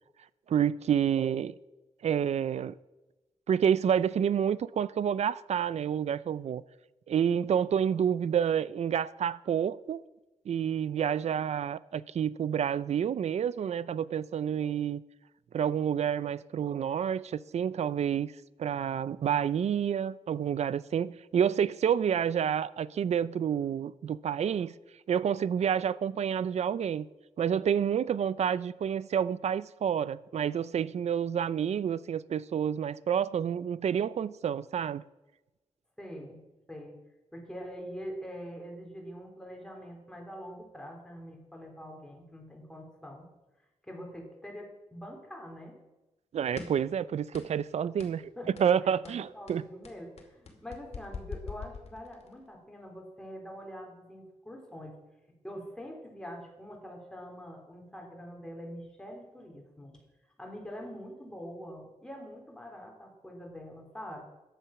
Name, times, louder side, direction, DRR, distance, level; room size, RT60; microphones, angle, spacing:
voice 1, 0.5-1.5 2.0-2.7 3.5-6.6 7.1-10.0 10.5-15.0 15.5-18.3 18.6-24.7 25.1-27.0 27.4-35.0 46.3-49.6, right 8 dB, 65° right, 0.5 m, -29 dB
voice 2, 36.0-36.4 36.7-37.0 37.3-43.3 43.8-45.8 48.4-55.0 55.4-60.0 60.4-64.2, equal, 5° left, 3.7 m, -44 dB
sound 1, 46.6-46.9 47.3-47.7 48.0-48.2 48.6-48.8 49.0-52.4, left 5 dB, 60° left, 2.4 m, -43 dB
14.5 x 10.5 x 5.9 m
wide cardioid pair, 135°, 12 cm